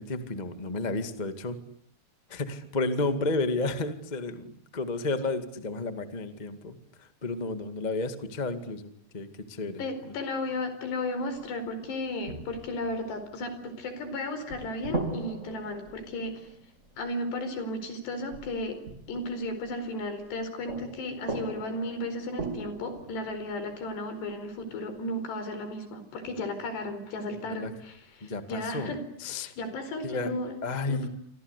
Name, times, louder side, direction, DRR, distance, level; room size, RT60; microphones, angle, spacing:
voice 1, 0.0-1.6 2.3-10.1 27.3-27.7 28.2-28.9 29.2-29.5 30.0-30.3 30.6-31.1, left 3 dB, 35° left, 9 dB, 0.7 m, -32 dB
voice 2, 9.8-16.5 17.0-18.8 19.1-30.6 30.9-31.1, left 1 dB, 70° left, 10 dB, 6.7 m, -34 dB
sound 1, 11.3-11.8 12.2-14.1 14.5-17.5 18.3-20.4 20.7-25.0 26.2-26.9, right 3 dB, 20° right, 3.0 m, -40 dB
28.0 x 25.0 x 8.3 m, 0.65 s
omnidirectional pair, 5.0 m